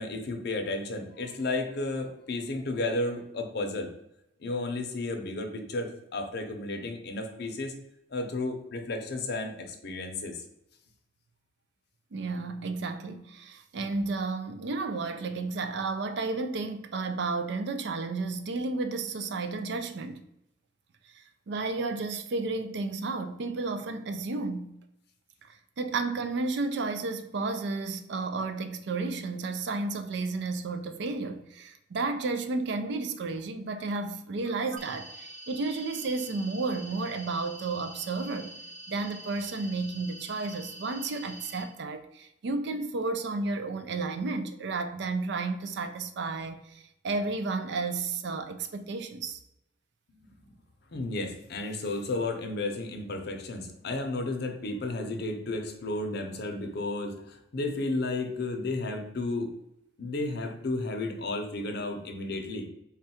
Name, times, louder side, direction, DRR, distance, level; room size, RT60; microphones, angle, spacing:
voice 1, 0.0-3.9 4.4-7.7 8.1-10.4 50.4-50.5 50.9-59.5 60.0-62.7, left 2 dB, 60° left, 0.6 m, -33 dB
voice 2, 12.1-20.2 21.1-24.7 25.4-38.5 38.9-49.4, right 3 dB, 65° right, 0.4 m, -32 dB
sound 1, 34.8-41.6, right 1 dB, 45° right, 1.1 m, -45 dB
3.6 x 2.3 x 4.2 m
head